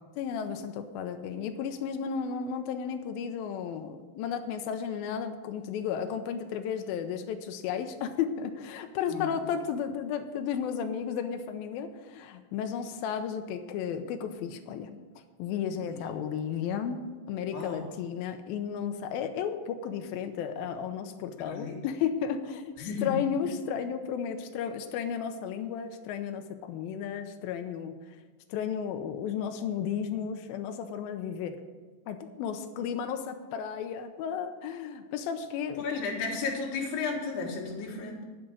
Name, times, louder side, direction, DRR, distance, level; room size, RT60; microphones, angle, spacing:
voice 1, 0.2-14.9 15.4-17.0 17.3-27.9 28.5-31.6 32.1-36.4, left 7 dB, 90° left, 6 dB, 2.1 m, -33 dB
voice 2, 17.5-17.8 21.5-21.8 22.8-23.2 35.8-38.2, left 4 dB, 65° left, -1 dB, 3.8 m, -33 dB
11.5 x 6.0 x 8.8 m, 1.4 s
omnidirectional pair, 5.2 m